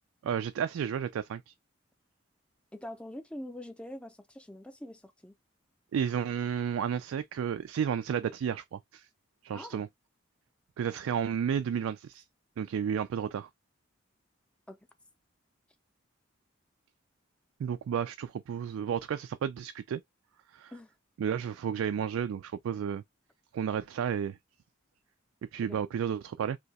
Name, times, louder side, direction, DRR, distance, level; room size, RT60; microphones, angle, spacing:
voice 1, 0.2-1.5 5.9-9.1 9.4-9.9 10.8-12.2 12.6-13.5 17.6-20.0 20.5-20.7 21.2-23.0 23.5-24.4 25.5-26.6, right 8 dB, 90° right, 0.3 m, -32 dB
voice 2, 2.7-5.3 9.5-9.8 14.7-14.8 20.7-20.9 25.6-25.8, left 1 dB, 5° left, 0.4 m, -44 dB
2.7 x 2.3 x 4.0 m
head